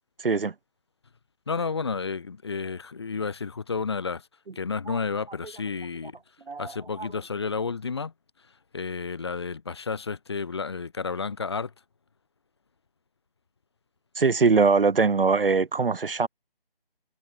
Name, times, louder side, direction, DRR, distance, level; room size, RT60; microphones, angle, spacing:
voice 1, 0.2-0.5 4.9-5.0 6.5-6.7 7.0-7.1 14.2-16.3, right 4 dB, 65° right, 0.9 m, -22 dB
voice 2, 1.5-4.3 4.5-6.2 6.6-8.1 8.7-11.7, left 5 dB, 25° left, 1.7 m, -31 dB
figure-of-eight pair, 165°, 30 cm